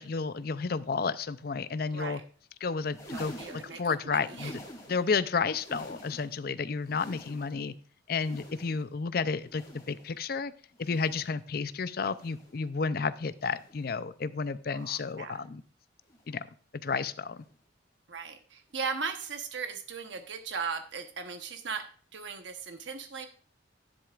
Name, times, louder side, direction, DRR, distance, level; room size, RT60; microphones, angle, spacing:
voice 1, 0.0-2.2 2.6-4.6 4.9-7.7 8.1-10.5 10.8-15.6 16.3-16.4 16.8-17.4, left 5 dB, 50° left, 15 dB, 0.5 m, -31 dB
sound 1, 2.8-5.2 5.4-6.4 6.7-7.7 8.1-9.0 9.4-10.2 10.7-11.4 12.1-12.6 13.4-13.9 14.7-15.1 16.1-16.4 17.4-17.6 18.7-18.8, equal, 15° left, 2.7 m, -48 dB
voice 2, 3.1-4.5 14.7-15.4 18.1-23.3, right 5 dB, 70° right, 6 dB, 1.0 m, -38 dB
11.0 x 10.0 x 2.4 m, 0.43 s
head